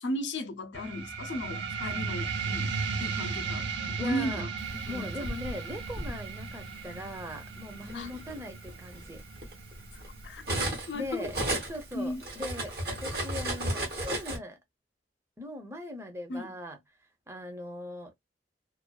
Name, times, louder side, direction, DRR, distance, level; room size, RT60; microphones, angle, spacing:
voice 1, 0.0-4.5 4.9-5.1 7.9-8.1 10.2-10.4 10.9-11.2 11.9-12.3 16.3-16.5, left 1 dB, 90° left, 0.5 m, -35 dB
sound 1, 0.7-11.8, right 5 dB, 90° right, 0.6 m, -36 dB
voice 2, 4.0-4.4 4.9-9.2 10.9-11.4 11.7-14.6 15.4-16.8 17.3-18.1, left 1 dB, 15° right, 0.6 m, -40 dB
Cutlery silverware, 4.8-6.1 7.1-7.3 7.7-10.9 11.2-14.4, right 1 dB, 60° right, 1.0 m, -34 dB
2.4 x 2.2 x 2.3 m
head